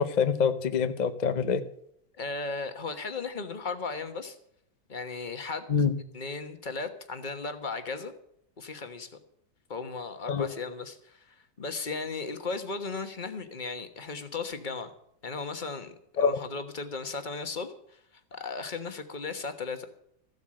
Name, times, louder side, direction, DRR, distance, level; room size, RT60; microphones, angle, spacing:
voice 1, 0.0-1.6 5.7-5.9 10.3-10.5 16.2-16.4, left 6 dB, 85° left, 10 dB, 0.3 m, -25 dB
voice 2, 2.2-4.4 4.9-5.7 6.1-8.1 8.6-9.1 9.7-14.9 15.2-18.0 18.3-19.9, left 4 dB, 30° left, 8 dB, 1.1 m, -36 dB
14.5 x 8.1 x 7.6 m, 0.73 s
omnidirectional pair, 2.1 m